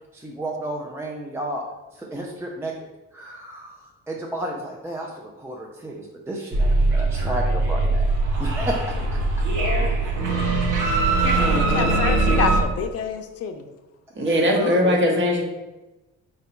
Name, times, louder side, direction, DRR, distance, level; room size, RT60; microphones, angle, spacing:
voice 1, 0.1-1.6 1.9-2.7 3.1-8.1 8.4-9.2 14.2-15.0, right 1 dB, 10° right, -2 dB, 0.4 m, -32 dB
sound 1, 6.5-12.6, right 2 dB, 85° right, 0.8 m, -21 dB
voice 2, 9.6-9.9 11.5-13.6, left 7 dB, 55° left, 6 dB, 0.5 m, -28 dB
voice 3, 11.4-12.0 14.2-15.4, left 1 dB, 40° right, 0 dB, 0.9 m, -21 dB
3.9 x 2.2 x 4.3 m, 1.1 s
cardioid pair, 90°, 30 cm